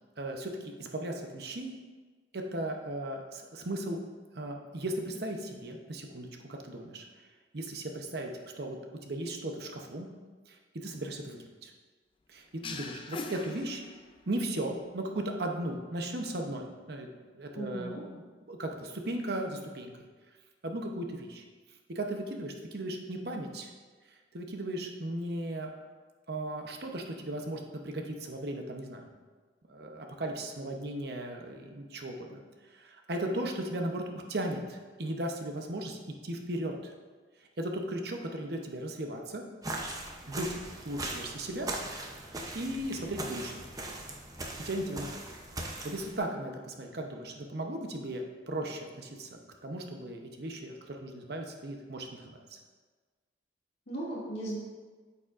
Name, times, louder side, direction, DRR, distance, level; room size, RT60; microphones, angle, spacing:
voice 1, 0.2-1.7 2.3-4.0 4.3-7.1 7.5-8.3 8.6-10.1 10.5-11.7 12.3-13.8 14.3-17.1 17.3-20.1 20.6-21.4 21.9-23.7 24.3-25.7 26.3-29.1 29.7-36.9 37.6-39.4 40.3-40.5 40.8-41.7 42.5-43.6 44.6-45.2 45.6-52.6, right 1 dB, 55° right, 2 dB, 0.8 m, -37 dB
sound 1, 12.6-14.4, left 4 dB, 30° left, 0.4 m, -41 dB
voice 2, 17.5-18.0 53.9-54.6, right 1 dB, 60° left, -6 dB, 2.2 m, -36 dB
sound 2, 39.6-46.2, right 2 dB, 20° right, 0.6 m, -40 dB
8.6 x 6.8 x 2.5 m, 1.4 s
head